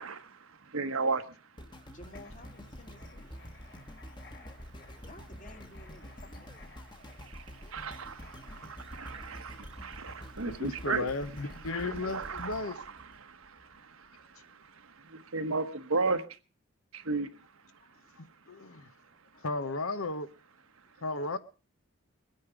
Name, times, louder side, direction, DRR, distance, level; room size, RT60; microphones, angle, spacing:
voice 1, 0.0-2.0 3.6-5.1 6.8-16.2 16.9-19.4 20.7-21.0, right 3 dB, 75° right, 1.2 m, -37 dB
sound 1, 1.6-13.8 14.3-14.4, equal, 20° left, 1.2 m, -48 dB
voice 2, 1.9-3.3 5.0-6.9 14.0-14.3 14.6-14.8 17.8-17.9 18.6-18.8 19.1-19.4, left 1 dB, 35° left, 1.8 m, -55 dB
Writing, 2.0-11.9, left 3 dB, 55° left, 2.5 m, -57 dB
voice 3, 10.4-12.8 18.2-18.9 19.4-20.3 21.0-21.4, left 3 dB, 80° left, 1.1 m, -35 dB
22.0 x 9.5 x 5.1 m
head